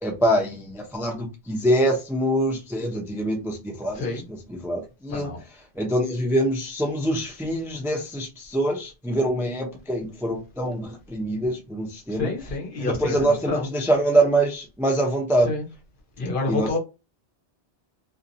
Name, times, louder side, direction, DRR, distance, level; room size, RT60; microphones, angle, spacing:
voice 1, 0.0-5.3 5.8-12.3 12.8-15.5 16.5-16.7, right 1 dB, 5° right, 0.4 m, -24 dB
voice 2, 3.9-4.2 5.1-5.4 12.1-13.7 15.4-15.6 16.2-16.8, left 3 dB, 55° left, 0.9 m, -28 dB
2.7 x 2.2 x 2.6 m
omnidirectional pair, 1.1 m